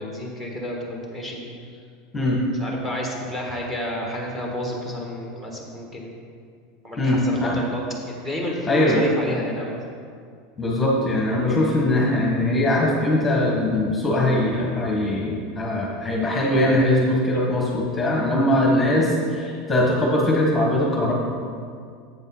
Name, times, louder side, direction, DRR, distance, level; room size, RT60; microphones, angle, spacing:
voice 1, 0.0-1.4 2.6-6.1 6.8-7.8 8.2-9.8, equal, 10° right, -2 dB, 1.4 m, -30 dB
voice 2, 7.0-7.6 8.7-9.0 10.6-21.1, left 1 dB, 15° left, -3 dB, 1.3 m, -21 dB
7.8 x 5.3 x 5.7 m, 2.2 s
supercardioid pair, 140°, 0 cm